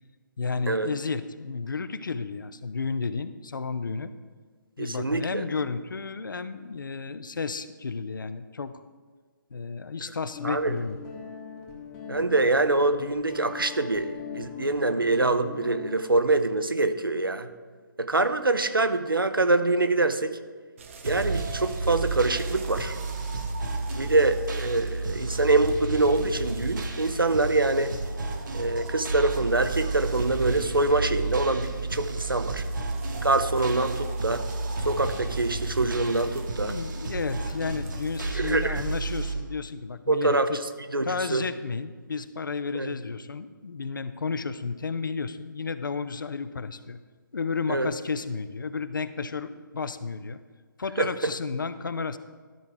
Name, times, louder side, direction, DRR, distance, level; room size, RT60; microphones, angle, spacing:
voice 1, 0.4-4.1 4.8-8.8 9.5-11.0 36.6-40.6 41.0-47.0 47.3-50.4 50.8-52.2, left 4 dB, 70° left, 13 dB, 0.5 m, -32 dB
voice 2, 4.8-5.4 10.4-10.7 12.1-17.5 18.0-20.4 21.0-23.0 23.9-27.9 28.5-32.6 33.2-34.5 34.8-36.8 38.3-38.8 40.1-41.4 42.7-43.0 47.7-47.9 51.0-51.1, right 2 dB, 85° right, 10 dB, 0.7 m, -25 dB
Guitar, 10.3-16.0, left 6 dB, 20° left, 1.0 m, -41 dB
sound 1, 20.8-39.2, right 5 dB, 35° right, 0.7 m, -46 dB
sound 2, 21.0-39.3, right 3 dB, 65° right, 1.2 m, -32 dB
12.5 x 4.6 x 3.9 m, 1.5 s
figure-of-eight pair, 145°, 11 cm